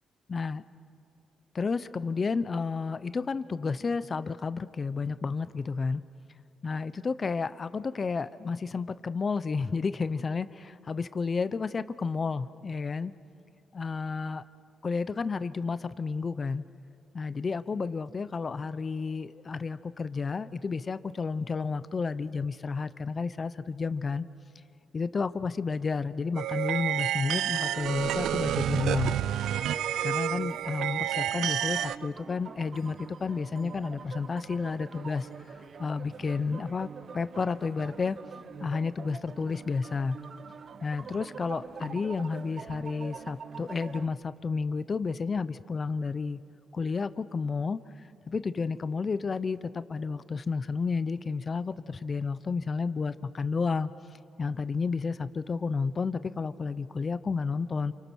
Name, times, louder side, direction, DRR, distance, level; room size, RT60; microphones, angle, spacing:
voice 1, 0.3-0.6 1.5-6.0 6.6-13.1 13.7-14.4 14.8-16.6 17.1-24.2 24.9-29.1 30.0-35.3 35.8-38.2 38.6-40.2 40.8-46.4 46.7-47.8 48.3-53.9 54.4-57.9, left 4 dB, 35° left, 15 dB, 0.7 m, -31 dB
sound 1, 26.3-32.0, right 11 dB, 85° right, 0.5 m, -29 dB
sound 2, 28.7-44.1, right 6 dB, 50° right, 0.8 m, -44 dB
28.5 x 26.5 x 6.3 m, 2.5 s
cardioid pair, 100°, 0 cm